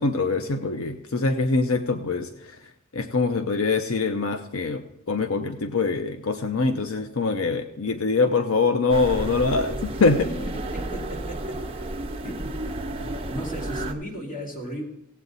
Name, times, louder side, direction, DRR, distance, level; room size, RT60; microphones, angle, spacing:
voice 1, 0.0-2.6 2.9-10.3, left 3 dB, 85° left, 8 dB, 0.7 m, -24 dB
sound 1, 8.9-13.9, right 1 dB, 25° right, 0.9 m, -32 dB
voice 2, 10.2-11.8 12.2-12.5 13.3-14.8, equal, 40° left, 0 dB, 2.7 m, -35 dB
16.5 x 8.2 x 4.0 m, 0.89 s
head